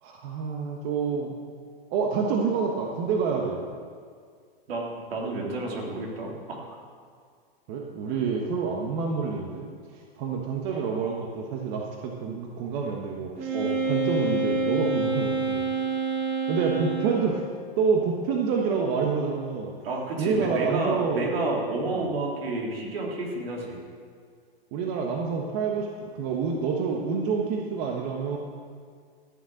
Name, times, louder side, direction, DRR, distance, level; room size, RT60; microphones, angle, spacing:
voice 1, 0.0-1.3 1.9-3.6 7.7-9.7 9.9-13.5 13.9-15.7 16.5-17.4 17.8-19.7 20.2-21.2 21.9-22.0 24.7-25.9 26.1-28.4, right 5 dB, 45° right, 0 dB, 1.4 m, -27 dB
voice 2, 4.7-6.7 13.5-13.8 19.8-23.8, right 2 dB, 75° right, -1 dB, 3.3 m, -30 dB
Wind instrument woodwind instrument, 13.4-17.4, right 3 dB, 25° right, 3.4 m, -27 dB
14.0 x 6.7 x 7.7 m, 2.1 s
hypercardioid pair, 130°, 30 cm